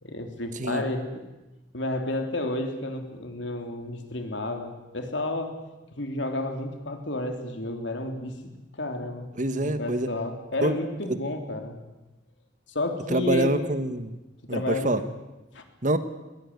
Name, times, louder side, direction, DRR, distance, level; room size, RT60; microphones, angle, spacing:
voice 1, 0.0-1.2 1.7-5.6 6.0-8.4 8.7-9.3 9.6-11.8 12.7-13.6 14.5-15.0 15.5-15.6, left 2 dB, 70° left, 5 dB, 3.3 m, -31 dB
voice 2, 9.3-10.1 10.6-10.8 11.1-11.2 13.1-14.2 14.5-15.0 15.8-16.0, right 1 dB, 40° right, 11 dB, 1.4 m, -25 dB
21.5 x 18.5 x 9.6 m, 1.1 s
head